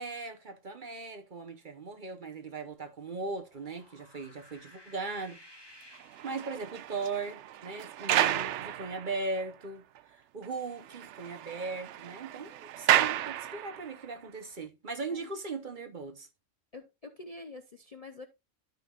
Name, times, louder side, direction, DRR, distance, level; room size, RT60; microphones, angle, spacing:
voice 1, 0.0-5.7 6.2-9.8 10.3-16.3, right 3 dB, 40° right, 1.0 m, -38 dB
sound 1, 3.3-7.0, left 1 dB, 20° left, 1.7 m, -56 dB
sound 2, 6.0-9.4 10.0-10.1 10.4-10.5 10.8-14.0, right 12 dB, 70° right, 0.8 m, -32 dB
voice 2, 16.7-18.3, left 3 dB, 40° left, 0.6 m, -46 dB
13.0 x 5.6 x 2.4 m
omnidirectional pair, 1.3 m